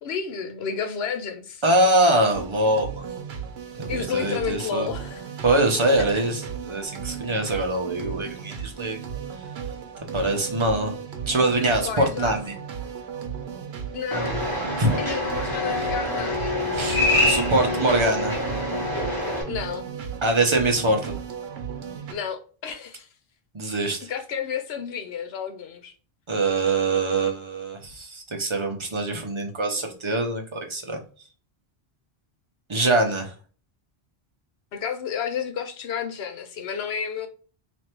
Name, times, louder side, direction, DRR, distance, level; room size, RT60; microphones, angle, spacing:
voice 1, 0.0-1.6 3.9-5.2 11.8-12.4 13.9-14.3 15.0-16.5 19.3-19.9 22.1-23.1 24.1-25.9 34.7-37.3, left 7 dB, 80° left, 0.9 m, -31 dB
voice 2, 1.6-3.0 3.7-4.9 5.4-9.0 10.1-11.0 11.3-12.5 14.8-15.0 16.7-17.0 17.3-18.4 20.2-21.2 23.5-24.1 26.3-31.0 32.7-33.3, right 2 dB, 30° right, 0.7 m, -23 dB
sound 1, 2.3-22.1, right 7 dB, 85° right, 1.0 m, -36 dB
sound 2, 14.1-19.4, left 1 dB, 20° left, 1.5 m, -25 dB
3.2 x 2.6 x 4.4 m
omnidirectional pair, 1.0 m